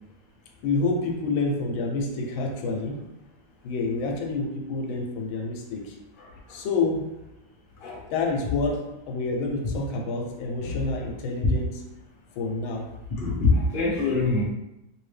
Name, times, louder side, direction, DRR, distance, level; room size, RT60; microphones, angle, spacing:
voice 1, 0.6-3.0 3.6-5.9 6.5-7.1 8.1-11.8 12.4-12.9, left 3 dB, 85° left, 2 dB, 1.4 m, -28 dB
voice 2, 6.2-6.6 7.8-8.0 13.2-14.4, left 3 dB, 40° left, -4 dB, 0.7 m, -24 dB
3.2 x 2.7 x 3.2 m, 0.92 s
omnidirectional pair, 2.2 m